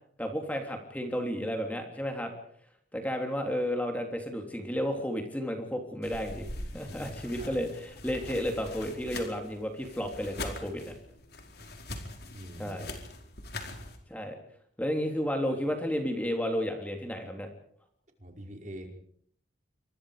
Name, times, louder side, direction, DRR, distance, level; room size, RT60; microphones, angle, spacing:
voice 1, 0.2-2.3 2.9-6.5 6.7-10.9 12.6-12.9 14.1-14.3 14.8-17.5, equal, 10° left, 3 dB, 3.3 m, -32 dB
sound 1, 6.0-14.0, left 2 dB, 55° left, 4.9 m, -42 dB
voice 2, 12.3-12.8 18.2-18.9, equal, 40° right, 3 dB, 5.4 m, -44 dB
28.0 x 25.0 x 5.1 m, 0.63 s
head